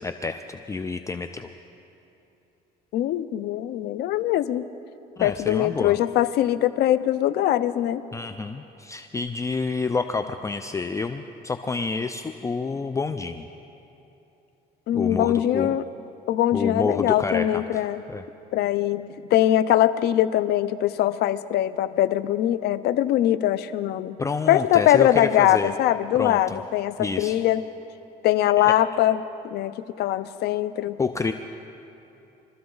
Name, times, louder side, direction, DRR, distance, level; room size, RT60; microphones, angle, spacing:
voice 1, 0.0-1.5 5.2-6.0 8.1-13.5 14.9-15.8 16.5-17.8 18.1-18.3 24.2-25.7 26.2-26.6 27.0-27.4 28.6-28.8 31.0-31.3, left 4 dB, 20° left, 8 dB, 0.5 m, -28 dB
voice 2, 2.9-4.7 5.2-8.0 14.9-15.8 16.3-18.0 18.5-24.2 24.5-27.6 28.2-31.0, left 12 dB, 75° left, 14 dB, 0.6 m, -22 dB
24.0 x 13.5 x 3.9 m, 3.0 s
cardioid pair, 110°, 17 cm